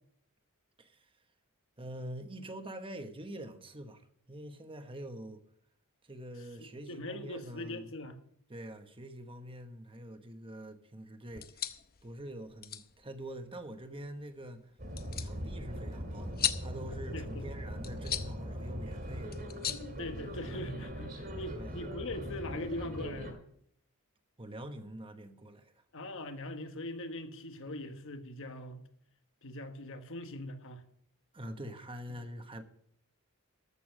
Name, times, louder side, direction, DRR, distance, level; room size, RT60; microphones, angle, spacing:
voice 1, 0.8-1.1 1.8-5.4 6.0-7.9 8.5-11.7 12.0-14.6 15.2-19.3 21.5-21.8 24.4-25.8 31.3-32.6, right 1 dB, 25° right, 1.1 m, -45 dB
voice 2, 6.6-8.2 17.1-17.5 20.0-23.4 25.9-28.8 29.4-30.8 32.2-32.3, left 1 dB, 65° left, 1.3 m, -41 dB
sound 1, 11.3-20.7, left 10 dB, 45° left, 0.7 m, -41 dB
sound 2, 14.8-23.3, equal, 45° right, 2.4 m, -40 dB
14.0 x 6.9 x 6.4 m
head